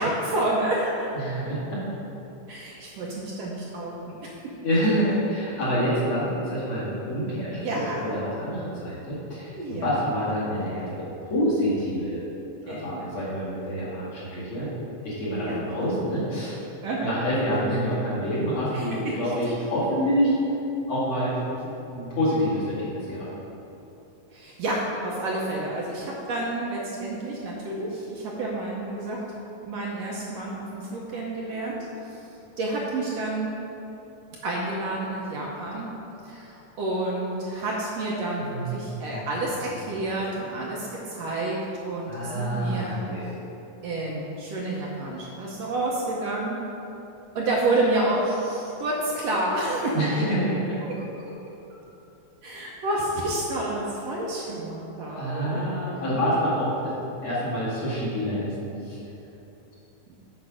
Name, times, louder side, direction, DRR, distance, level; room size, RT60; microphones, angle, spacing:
voice 1, 0.0-1.1 2.5-4.3 7.6-8.0 9.5-9.9 12.7-13.2 15.3-15.7 16.8-17.2 18.7-19.3 24.3-29.2 29.7-31.8 32.0-32.3 32.6-33.5 34.4-35.9 36.2-41.6 41.8-43.0 43.8-46.6 47.4-50.0 52.4-55.7, right 2 dB, 70° right, -4 dB, 1.8 m, -29 dB
voice 2, 1.1-1.8 4.6-12.2 12.6-14.7 15.0-16.6 17.0-20.4 20.9-23.3 38.4-39.2 42.1-43.3 49.9-50.8 55.1-56.9 57.2-59.0, equal, 50° left, -9 dB, 2.8 m, -27 dB
8.3 x 5.5 x 5.0 m, 2.9 s
omnidirectional pair, 3.5 m